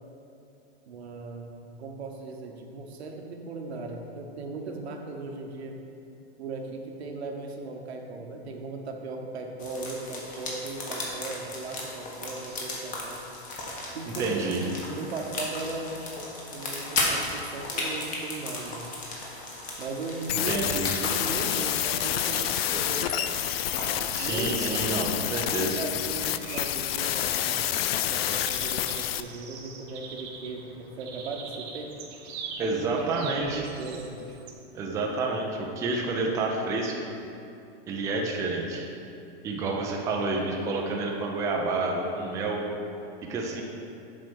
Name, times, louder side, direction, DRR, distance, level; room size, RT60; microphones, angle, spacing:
voice 1, 0.8-5.8 6.4-13.2 13.9-16.0 16.5-18.9 19.8-23.3 24.2-25.1 25.6-27.8 28.1-31.9 32.6-34.4 39.9-40.3, right 3 dB, 85° right, 2 dB, 1.2 m, -37 dB
sound 1, 9.6-24.1, left 2 dB, 25° left, 1.3 m, -35 dB
voice 2, 14.2-14.6 20.3-20.9 24.1-25.8 32.6-33.7 34.7-36.9 37.9-38.9 39.4-42.6 43.3-43.6, right 3 dB, 10° right, -1 dB, 0.4 m, -29 dB
sound 2, 20.3-29.2, left 12 dB, 70° left, 0.4 m, -28 dB
sound 3, 23.8-34.5, right 5 dB, 30° right, 0.9 m, -44 dB
7.7 x 4.3 x 6.0 m, 2.7 s
hypercardioid pair, 150°, 31 cm